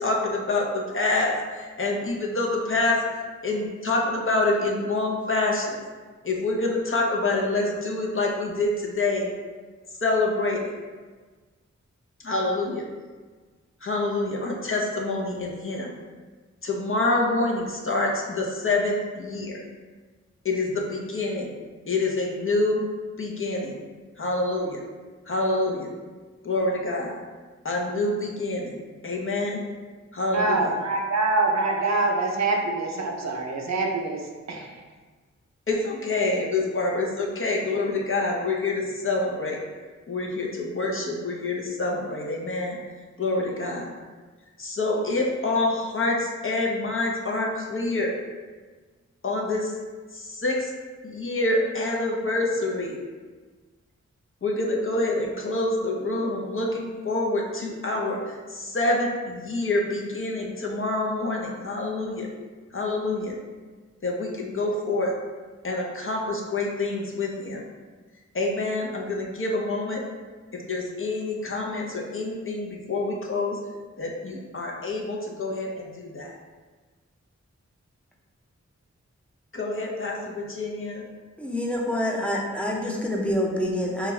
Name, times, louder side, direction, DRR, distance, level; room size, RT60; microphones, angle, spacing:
voice 1, 0.0-3.0 3.4-5.8 6.2-9.3 10.0-10.7 12.2-12.8 13.8-15.9 16.6-19.6 20.4-21.5 21.9-22.9 23.2-23.8 24.2-24.8 25.3-25.9 26.4-27.2 27.6-28.8 29.0-29.6 30.1-30.7 35.7-39.6 40.1-42.8 43.2-43.9 44.6-48.1 49.2-49.7 50.1-50.7 51.0-53.0 54.4-62.3 62.7-63.3 64.0-65.1 65.6-67.6 68.3-70.0 70.5-73.6 74.0-76.3 79.5-81.0, left 2 dB, 45° left, -2 dB, 0.7 m, -26 dB
voice 2, 30.3-34.2 34.5-34.7, right 3 dB, 65° right, 1 dB, 0.5 m, -25 dB
voice 3, 81.4-84.1, left 1 dB, 5° left, -2 dB, 0.6 m, -26 dB
3.5 x 2.4 x 3.1 m, 1.4 s
cardioid pair, 45°, 29 cm